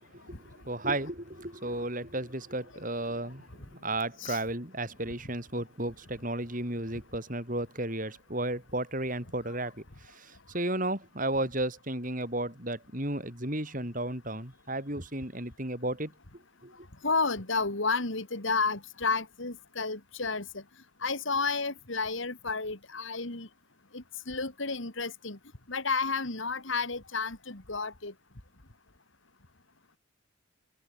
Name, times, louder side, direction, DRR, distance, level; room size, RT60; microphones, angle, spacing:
voice 1, 0.4-9.7 10.0-16.1 16.6-16.7, right 1 dB, 40° right, 7.4 m, -33 dB
voice 2, 17.0-20.6 21.0-23.5 23.9-25.4 25.7-28.1, left 4 dB, 65° left, 2.5 m, -31 dB
head